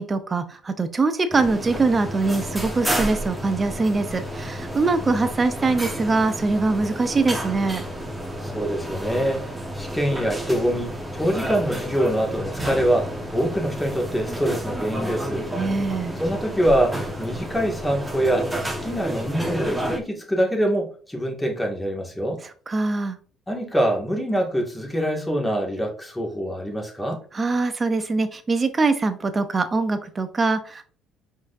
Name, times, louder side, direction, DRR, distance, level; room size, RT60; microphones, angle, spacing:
voice 1, 0.0-7.9 15.6-16.2 22.7-23.2 27.3-30.9, right 3 dB, 30° right, 11 dB, 0.7 m, -23 dB
sound 1, 1.3-20.0, right 1 dB, 10° right, 1.3 m, -31 dB
voice 2, 8.4-9.4 9.7-15.5 16.2-22.4 23.5-27.2, equal, 10° left, 0 dB, 2.0 m, -24 dB
4.8 x 4.1 x 2.6 m, 0.42 s
hypercardioid pair, 60°, 0 cm